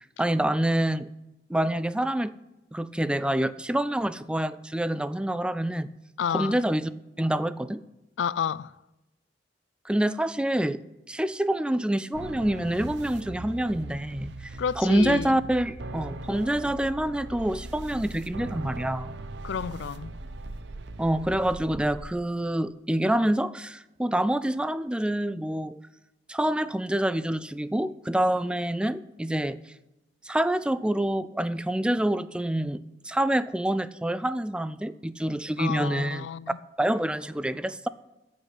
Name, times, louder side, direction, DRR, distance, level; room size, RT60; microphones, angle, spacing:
voice 1, 0.2-1.1 1.5-2.3 2.7-5.9 6.3-6.9 7.2-7.8 9.9-10.8 11.1-14.5 14.8-19.1 21.0-25.8 26.3-29.6 30.2-36.3 36.8-37.9, right 1 dB, 5° right, 0.3 m, -27 dB
voice 2, 6.2-6.6 8.2-8.7 14.6-15.4 19.4-20.1 35.6-36.6, left 7 dB, 90° left, 0.4 m, -30 dB
sound 1, 12.1-22.1, right 2 dB, 70° right, 0.8 m, -40 dB
14.5 x 5.2 x 8.3 m
head